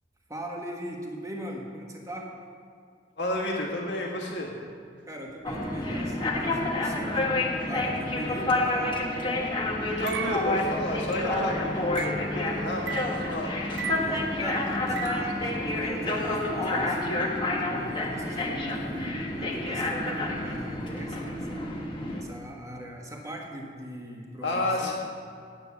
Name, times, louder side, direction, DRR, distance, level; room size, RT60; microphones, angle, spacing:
voice 1, 0.3-2.3 5.1-7.2 7.7-9.0 13.8-17.2 17.7-21.8 22.2-24.9, right 1 dB, 20° right, 1 dB, 1.2 m, -40 dB
voice 2, 3.2-4.5 10.0-13.5 13.8-13.9 24.4-24.9, left 1 dB, 80° left, -2 dB, 1.6 m, -31 dB
sound 1, 5.4-22.2, left 2 dB, 25° left, 1.2 m, -29 dB
sound 2, 10.1-15.6, right 5 dB, 70° right, 0.4 m, -37 dB
8.9 x 8.7 x 7.0 m, 2.3 s
head